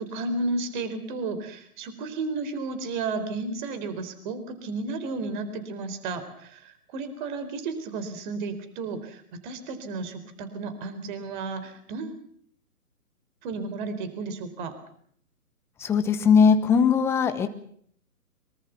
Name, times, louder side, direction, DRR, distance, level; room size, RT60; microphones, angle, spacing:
voice 1, 0.0-12.2 13.4-14.7, right 3 dB, 30° right, 11 dB, 4.3 m, -33 dB
voice 2, 15.8-17.5, left 6 dB, 5° left, 9 dB, 0.9 m, -19 dB
24.5 x 24.5 x 5.9 m, 0.63 s
figure-of-eight pair, 140°, 46 cm